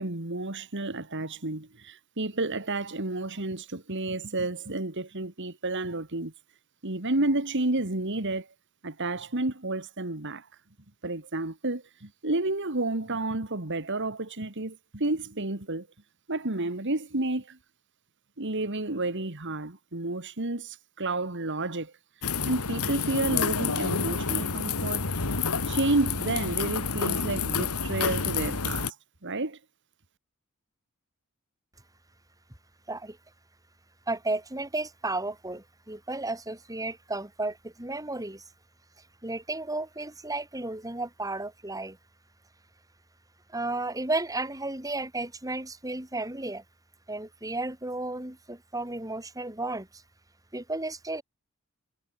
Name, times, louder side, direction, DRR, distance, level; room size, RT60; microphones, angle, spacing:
voice 1, 0.0-6.3 6.8-8.5 8.8-10.5 11.0-15.9 16.3-17.6 18.4-21.9 22.4-25.1 25.7-29.0 29.2-29.6, right 2 dB, 55° right, 2.4 m, -30 dB
sound 1, 22.2-28.9, left 5 dB, 85° left, 2.1 m, -29 dB
voice 2, 34.1-38.4 39.2-42.0 43.5-46.6 47.1-50.0 50.5-51.2, right 2 dB, 15° right, 3.7 m, -33 dB
head